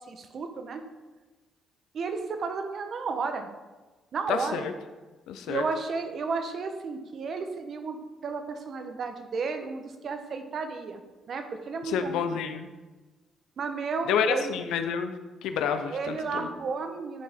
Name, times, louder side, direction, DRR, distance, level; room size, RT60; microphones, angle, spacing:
voice 1, 0.1-0.8 1.9-3.5 4.1-4.7 5.5-8.0 8.2-11.0 11.3-12.4 13.6-14.6 15.9-17.2, right 4 dB, 55° right, 6 dB, 0.9 m, -33 dB
voice 2, 4.3-4.7 5.3-5.6 11.8-12.7 14.0-15.1 15.4-16.5, left 7 dB, 90° left, 8 dB, 0.5 m, -29 dB
9.9 x 4.7 x 3.6 m, 1.2 s
cardioid pair, 90°, 0 cm